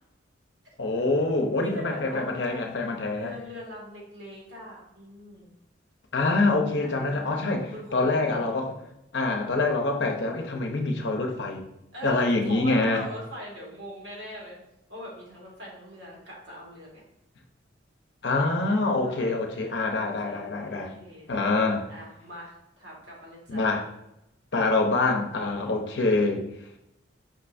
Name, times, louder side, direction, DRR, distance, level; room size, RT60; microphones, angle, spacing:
voice 1, 0.8-3.3 6.1-8.7 9.1-11.7 12.0-13.0 18.2-20.9 21.3-21.9 23.5-23.8 24.5-26.4, left 3 dB, 70° left, 2 dB, 0.7 m, -25 dB
voice 2, 1.6-2.7 3.1-5.5 6.8-8.5 11.9-14.6 14.9-17.0 18.3-19.4 19.9-21.3 21.9-23.8 25.5-25.7, equal, 70° right, -4 dB, 1.6 m, -42 dB
5.1 x 3.3 x 2.6 m, 0.85 s
head